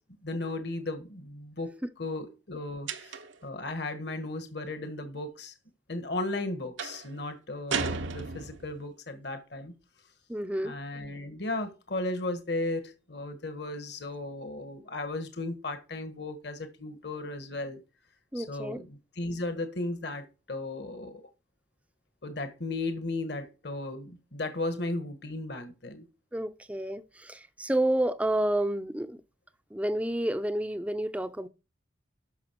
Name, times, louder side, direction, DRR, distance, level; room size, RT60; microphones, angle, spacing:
voice 1, 0.2-5.5 5.9-9.7 10.6-17.8 18.3-21.2 22.2-26.1, left 2 dB, 55° left, 1.6 m, -35 dB
sound 1, 2.9-3.5 6.8-7.1 7.7-8.8, right 5 dB, 75° right, 1.0 m, -34 dB
voice 2, 10.3-10.7 18.3-18.8 26.3-29.2 29.7-31.5, right 1 dB, 5° right, 0.6 m, -30 dB
12.5 x 6.0 x 4.6 m
head